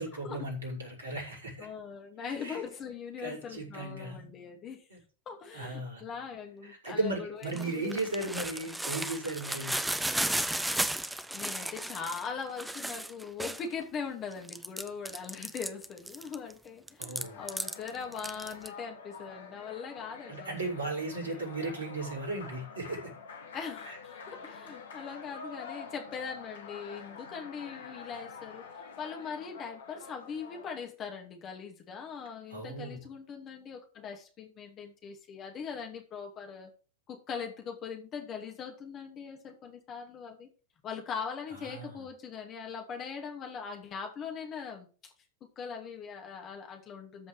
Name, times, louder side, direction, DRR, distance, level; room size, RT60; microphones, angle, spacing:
voice 1, 0.0-1.7 2.4-2.6 3.2-4.3 4.9-5.0 5.5-6.0 6.6-9.8 17.0-17.4 20.3-23.1 23.9-24.0 32.5-33.0 41.5-42.1, right 2 dB, 70° right, -2 dB, 5.5 m, -36 dB
voice 2, 1.6-4.8 5.3-8.0 11.3-20.9 21.3-21.4 23.5-28.6 29.0-36.7 37.1-40.5 40.8-45.1 45.6-47.3, left 6 dB, 30° left, 3 dB, 2.7 m, -41 dB
sound 1, 7.4-13.8 14.3-16.5 16.9-18.7, right 1 dB, 5° right, 0.8 m, -34 dB
sound 2, 17.2-30.9, left 5 dB, 65° left, 1.7 m, -47 dB
13.5 x 5.2 x 5.1 m, 0.37 s
figure-of-eight pair, 90°, 0 cm